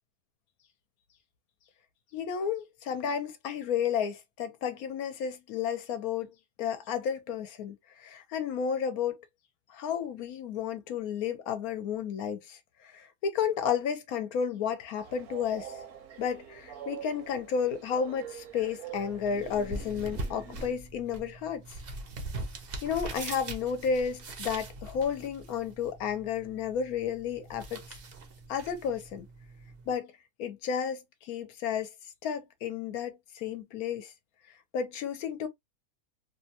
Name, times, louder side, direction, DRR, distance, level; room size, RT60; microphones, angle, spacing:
voice 1, 2.1-6.3 6.6-9.2 9.7-15.7 16.2-21.8 22.8-27.8 28.5-29.3 29.9-30.1 30.4-31.9 32.2-34.1 34.7-35.5, left 7 dB, 70° left, 1.1 m, -32 dB
Train, 15.0-20.7, right 8 dB, 75° right, 1.2 m, -45 dB
sound 1, 18.9-29.9, right 2 dB, 55° right, 0.7 m, -42 dB
3.1 x 2.2 x 2.7 m
omnidirectional pair, 1.6 m